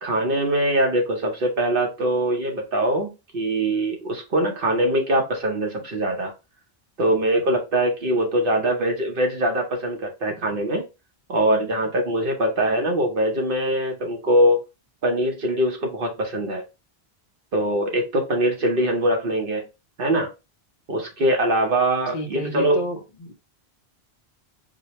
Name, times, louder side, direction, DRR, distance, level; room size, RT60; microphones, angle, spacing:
voice 1, 0.0-6.3 7.0-10.8 11.3-14.6 15.0-16.6 17.5-19.6 20.0-20.3 20.9-22.8, right 1 dB, 60° right, 1.0 m, -22 dB
voice 2, 22.1-23.3, equal, 45° left, 0.8 m, -31 dB
4.9 x 2.2 x 2.8 m
omnidirectional pair, 1.1 m